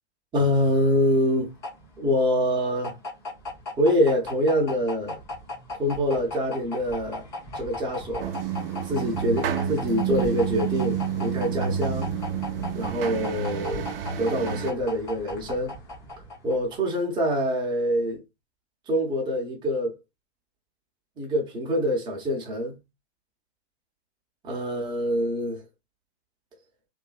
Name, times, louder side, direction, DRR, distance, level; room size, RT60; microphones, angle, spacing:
voice 1, 0.3-1.5 2.0-2.9 3.8-5.2 5.7-7.3 7.5-8.3 8.9-12.1 12.7-13.9 14.2-15.7 16.4-18.2 18.9-19.9 21.2-22.8 24.4-25.6, equal, 15° right, 0.7 m, -25 dB
sound 1, 0.9-16.9, left 1 dB, 10° left, 0.3 m, -38 dB
sound 2, 8.2-14.7, right 8 dB, 55° right, 0.5 m, -29 dB
2.6 x 2.5 x 2.2 m
hypercardioid pair, 115°, 34 cm